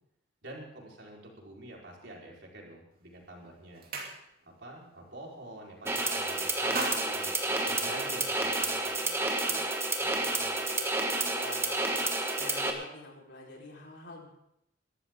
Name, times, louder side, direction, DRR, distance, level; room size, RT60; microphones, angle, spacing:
voice 1, 0.4-3.8 4.5-9.7 10.0-10.5, right 1 dB, 70° right, -2 dB, 4.5 m, -47 dB
sound 1, 2.9-3.1 3.5-4.6 5.0-5.2 5.5-6.1 6.4-8.3, right 3 dB, 55° right, 2.9 m, -40 dB
sound 2, 5.8-12.7, right 2 dB, 15° right, 1.6 m, -30 dB
voice 2, 11.1-12.0 12.4-14.3, left 2 dB, 65° left, -2 dB, 4.4 m, -46 dB
22.0 x 13.0 x 3.8 m, 0.77 s
head